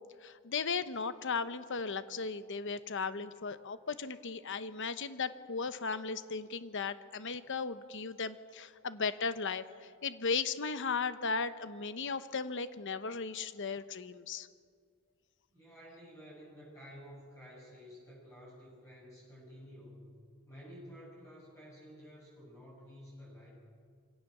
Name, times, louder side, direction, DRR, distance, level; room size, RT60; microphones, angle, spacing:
voice 1, 0.2-14.5, left 5 dB, 60° left, 12 dB, 0.9 m, -36 dB
voice 2, 15.5-20.1 20.5-23.5, equal, 15° left, -7 dB, 8.0 m, -52 dB
25.0 x 17.5 x 6.8 m, 2.1 s
head